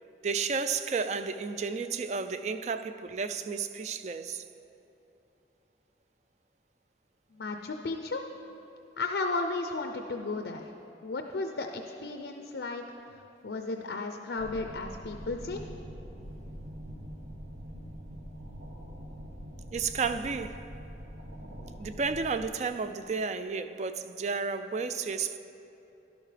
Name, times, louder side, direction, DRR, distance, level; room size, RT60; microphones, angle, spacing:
voice 1, 0.2-4.4 19.7-20.7 21.8-25.4, right 5 dB, 40° right, 0.3 m, -32 dB
voice 2, 7.3-8.2 9.0-10.7 11.0-12.8 13.4-15.6, left 3 dB, 80° left, 0.5 m, -34 dB
sound 1, 14.4-22.5, equal, 80° right, 1.2 m, -44 dB
12.0 x 11.5 x 3.3 m
head